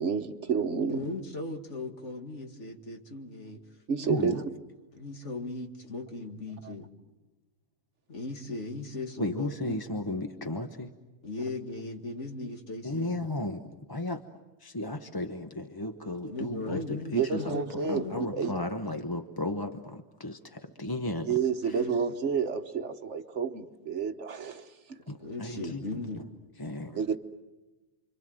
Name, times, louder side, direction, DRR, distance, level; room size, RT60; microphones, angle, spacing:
voice 1, 0.0-1.1 3.9-4.3 6.6-6.7 17.1-18.1 18.3-18.5 21.3-25.0 26.9-27.2, right 6 dB, 60° right, 1.4 m, -30 dB
voice 2, 0.9-3.6 4.0-4.3 4.9-6.9 8.1-9.8 11.2-13.1 16.3-18.6 21.8-21.9 25.2-26.2, left 2 dB, 55° left, 2.3 m, -38 dB
voice 3, 4.0-4.4 9.2-10.9 12.8-13.6 13.9-14.2 14.6-21.8 25.1-25.9 26.1-26.2 26.6-27.2, left 1 dB, 20° left, 0.9 m, -34 dB
29.0 x 25.0 x 7.8 m
omnidirectional pair, 1.4 m